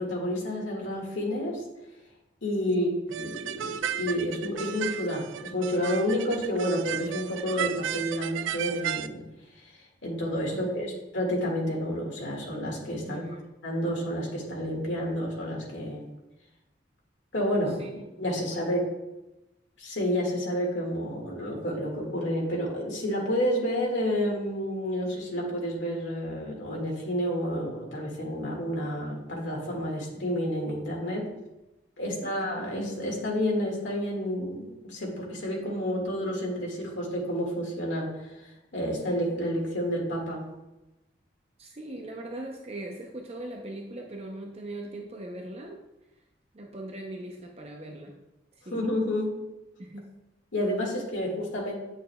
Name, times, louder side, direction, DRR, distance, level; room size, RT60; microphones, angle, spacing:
voice 1, 0.0-1.6 2.4-9.3 9.6-9.7 10.0-13.3 13.6-16.1 17.3-17.8 18.2-18.9 19.8-31.3 32.0-40.5 48.7-49.4 50.5-51.8, equal, 80° left, -2 dB, 1.8 m, -30 dB
sound 1, 3.1-9.1, right 10 dB, 85° right, 0.3 m, -34 dB
voice 2, 10.5-11.0 13.1-13.5 17.7-17.9 18.2-19.0 32.0-32.3 41.6-45.8 46.5-48.2 48.5-48.8 49.8-50.1, right 1 dB, 35° right, 1 dB, 0.6 m, -40 dB
8.9 x 6.2 x 2.2 m, 0.97 s
head